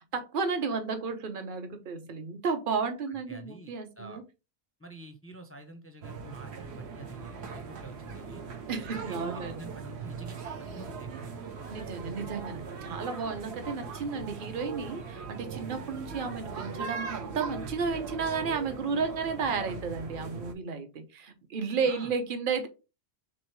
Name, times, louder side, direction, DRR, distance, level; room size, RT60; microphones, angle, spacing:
voice 1, 0.1-4.2 8.7-9.6 11.7-22.7, right 5 dB, 55° right, 0.9 m, -33 dB
voice 2, 3.3-4.2 4.8-8.5 8.9-11.3 21.8-22.1, right 2 dB, 20° left, 0.5 m, -47 dB
sound 1, 6.0-20.5, right 5 dB, 80° right, 1.0 m, -40 dB
3.5 x 3.0 x 4.5 m
omnidirectional pair, 1.1 m